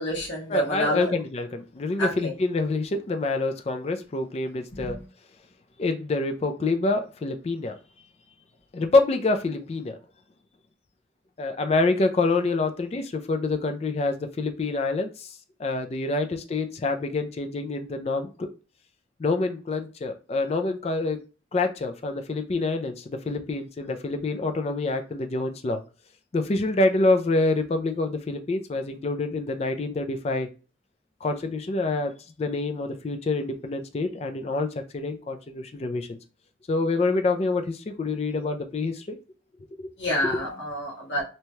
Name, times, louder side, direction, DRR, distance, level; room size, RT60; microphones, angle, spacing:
voice 1, 0.0-1.1 2.0-2.3 4.7-5.0 40.0-41.2, equal, 75° left, -4 dB, 1.2 m, -28 dB
voice 2, 0.5-5.0 5.8-7.8 8.7-10.0 11.4-18.5 19.2-21.2 21.5-25.8 26.3-30.5 31.2-32.1 32.4-34.7 34.9-36.2 36.7-39.2 39.8-39.9 40.2-40.3, left 3 dB, 35° left, 6 dB, 0.3 m, -26 dB
2.7 x 2.2 x 3.1 m, 0.35 s
head